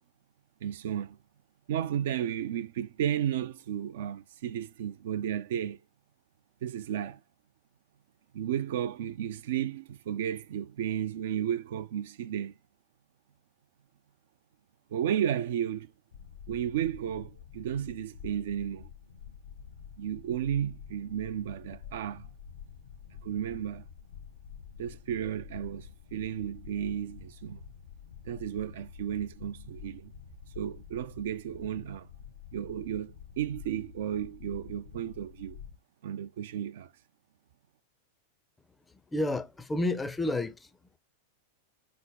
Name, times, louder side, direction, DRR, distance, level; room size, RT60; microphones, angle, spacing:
voice 1, 0.6-1.2 1.7-5.8 6.6-7.2 8.3-12.5 14.9-15.9 16.5-18.9 20.0-22.3 23.2-23.8 24.8-27.6 28.3-30.1 30.6-32.1 32.5-35.6 36.0-36.9, right 10 dB, 55° right, 0.3 m, -33 dB
sound 1, 16.1-35.8, left 8 dB, 65° left, 0.7 m, -48 dB
voice 2, 39.1-40.7, left 2 dB, 10° left, 0.5 m, -30 dB
4.0 x 3.4 x 3.8 m
figure-of-eight pair, 90°, 0 cm